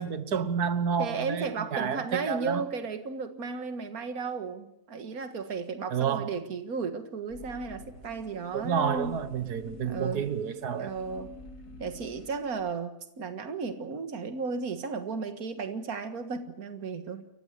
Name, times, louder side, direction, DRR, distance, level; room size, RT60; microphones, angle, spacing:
voice 1, 0.0-2.6 5.9-6.3 8.5-10.9, right 7 dB, 90° right, 1.8 m, -30 dB
voice 2, 1.0-9.2 9.8-10.3 10.8-11.3 11.8-17.3, right 4 dB, 65° right, 2.2 m, -34 dB
sound 1, 7.3-12.6, left 1 dB, 90° left, 4.3 m, -48 dB
29.5 x 15.0 x 8.4 m
omnidirectional pair, 1.6 m